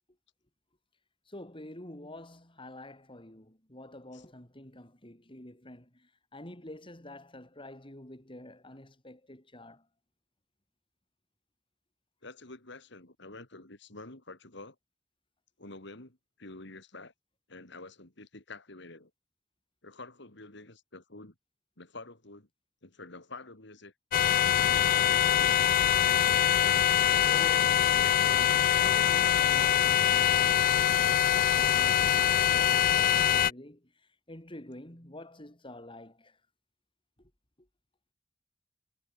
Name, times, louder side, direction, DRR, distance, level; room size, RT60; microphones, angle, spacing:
voice 1, 1.3-9.9 27.2-31.0 31.3-36.4 37.2-37.3 37.6-37.7, left 1 dB, 25° left, 5.0 m, -48 dB
voice 2, 12.2-14.8 15.6-17.1 17.5-19.1 19.8-21.3 21.8-22.5 22.8-23.9 24.9-25.7, left 2 dB, 65° left, 3.7 m, -48 dB
sound 1, 24.1-33.5, left 10 dB, 45° left, 0.3 m, -24 dB
head